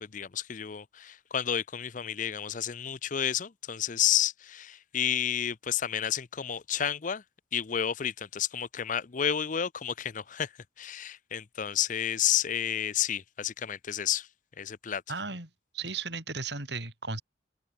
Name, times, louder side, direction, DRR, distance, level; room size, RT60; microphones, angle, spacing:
voice 1, 0.0-7.2 7.5-10.5 10.8-14.3 14.6-15.0, left 9 dB, 40° left, 0.5 m, -31 dB
voice 2, 15.1-17.2, right 4 dB, 60° right, 7.2 m, -36 dB
open air
head